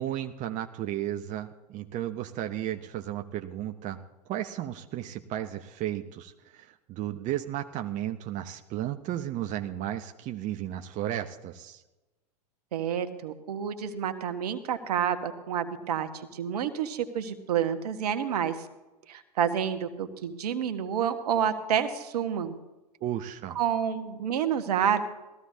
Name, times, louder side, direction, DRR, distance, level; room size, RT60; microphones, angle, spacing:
voice 1, 0.0-4.0 4.3-11.8 23.0-23.6, right 12 dB, 40° right, 6 dB, 0.9 m, -34 dB
voice 2, 12.7-18.5 19.1-22.6 23.5-25.0, right 8 dB, 70° right, 8 dB, 1.5 m, -29 dB
19.5 x 14.5 x 2.8 m, 1.0 s
hypercardioid pair, 95°, 21 cm